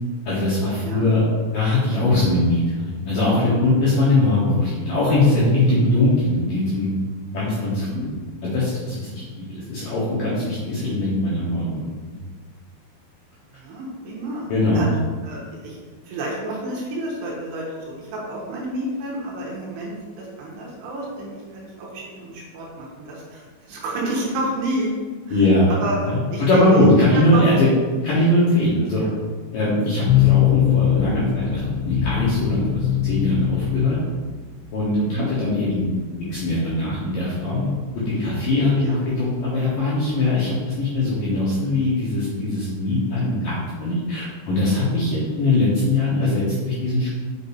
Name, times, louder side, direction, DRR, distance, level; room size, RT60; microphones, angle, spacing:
voice 1, 0.3-1.2 1.5-6.9 7.3-8.1 8.4-12.2 14.5-14.9 25.3-25.7 26.0-29.0 29.5-34.0 34.7-35.9 36.3-37.7 38.1-47.1, left 2 dB, 70° left, -9 dB, 2.1 m, -21 dB
voice 2, 13.5-14.5 14.7-14.9 15.2-15.8 16.1-24.9 25.3-25.4 25.7-26.0 26.3-26.9 27.1-27.7 29.0-29.2 30.8-30.9 35.0-35.3 38.8-39.0, right 2 dB, 70° right, -4 dB, 2.9 m, -30 dB
sound 1, 30.1-41.2, left 12 dB, 85° left, 2.7 m, -25 dB
6.8 x 6.4 x 2.7 m, 1.5 s
omnidirectional pair, 5.8 m